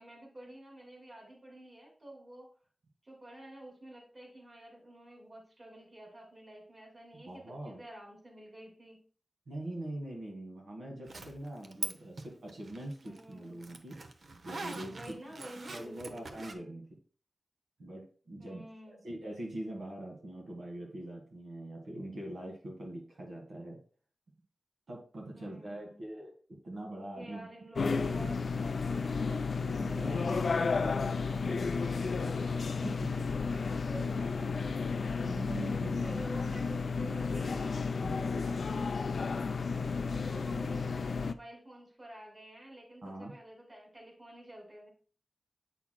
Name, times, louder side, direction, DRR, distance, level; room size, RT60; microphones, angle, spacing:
voice 1, 0.0-2.5 3.0-9.0 13.0-13.5 14.9-16.3 18.4-19.0 25.3-26.0 27.1-29.2 33.6-34.6 36.0-37.9 40.1-44.9, right 1 dB, 30° right, -1 dB, 2.6 m, -50 dB
voice 2, 7.1-7.8 9.5-14.0 14.4-15.2 15.7-16.9 17.8-23.8 24.9-26.3 26.6-27.5 27.8-28.3 29.6-32.4 32.8-33.1 35.2-36.2 38.0-38.6 43.0-43.3, right 1 dB, 90° right, -1 dB, 1.7 m, -43 dB
Zipper (clothing), 11.1-11.9 12.2-16.5, right 3 dB, 65° right, 0.7 m, -42 dB
sound 1, 27.8-41.3, left 4 dB, 70° left, 0.4 m, -32 dB
8.4 x 5.8 x 2.2 m, 0.41 s
wide cardioid pair, 95°, 0 cm